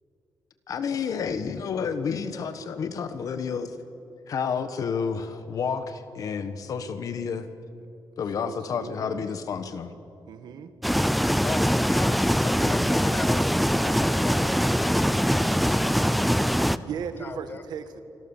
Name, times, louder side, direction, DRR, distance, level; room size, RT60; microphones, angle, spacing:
voice 1, 0.7-3.8 4.3-7.5 8.2-9.9, left 6 dB, 55° left, 10 dB, 1.4 m, -30 dB
voice 2, 8.5-9.2 10.3-10.7 16.8-18.0, right 7 dB, 90° right, 10 dB, 1.6 m, -37 dB
sound 1, 10.8-16.8, equal, ahead, 0.5 m, -23 dB
voice 3, 11.4-16.2 17.2-17.6, left 4 dB, 30° left, 9 dB, 1.5 m, -38 dB
26.5 x 25.0 x 7.3 m, 2.9 s
wide cardioid pair, 175°, 7 cm